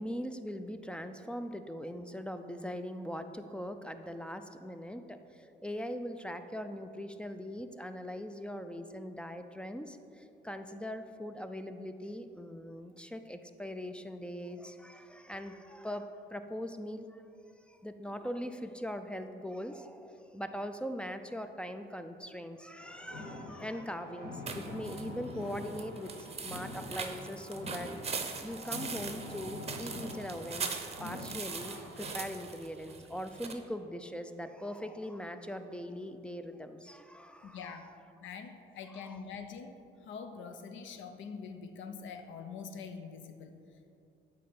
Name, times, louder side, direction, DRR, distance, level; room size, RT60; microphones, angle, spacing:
voice 1, 0.0-17.2 17.7-27.9 28.4-37.9 38.9-39.2, equal, 5° left, 8 dB, 0.3 m, -41 dB
sound 1, 22.8-32.1, left 2 dB, 50° left, 1.5 m, -45 dB
sound 2, 24.5-33.5, right 5 dB, 30° right, 0.7 m, -41 dB
voice 2, 37.4-37.9 38.2-39.7 40.0-43.6, left 6 dB, 75° left, 7 dB, 0.6 m, -44 dB
8.4 x 3.4 x 5.2 m, 2.6 s
cardioid pair, 90°, 20 cm